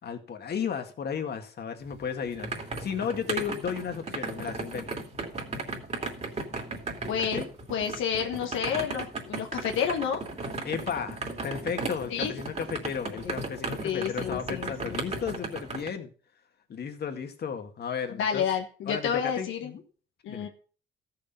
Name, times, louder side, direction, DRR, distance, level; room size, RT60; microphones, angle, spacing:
voice 1, 0.0-4.9 7.3-7.5 10.6-16.1 16.7-18.5 18.9-19.8 20.3-20.5, left 7 dB, 55° left, 5 dB, 2.0 m, -34 dB
sound 1, 1.9-15.9, right 3 dB, 35° right, 2.9 m, -36 dB
voice 2, 7.1-7.4 7.7-10.2 12.1-12.3 13.2-13.3 13.8-15.0 18.2-19.7 20.2-20.5, left 8 dB, 90° left, 4 dB, 1.4 m, -30 dB
14.0 x 6.7 x 5.5 m, 0.41 s
cardioid pair, 90°, 20 cm